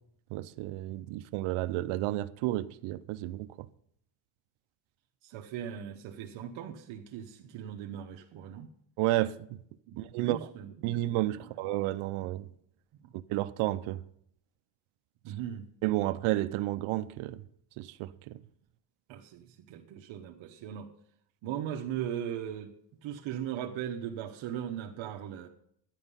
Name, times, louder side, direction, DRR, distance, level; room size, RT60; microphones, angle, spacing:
voice 1, 0.3-3.5 9.0-9.3 10.0-10.4 10.8-12.5 13.3-14.0 15.8-17.4 17.8-18.4, right 16 dB, 85° right, 0.7 m, -31 dB
voice 2, 5.2-8.7 9.9-11.0 11.4-11.5 15.2-15.7 19.1-20.9 21.4-22.7 23.0-25.5, right 10 dB, 70° right, 1.1 m, -38 dB
12.0 x 10.0 x 5.5 m
cardioid pair, 115°, 48 cm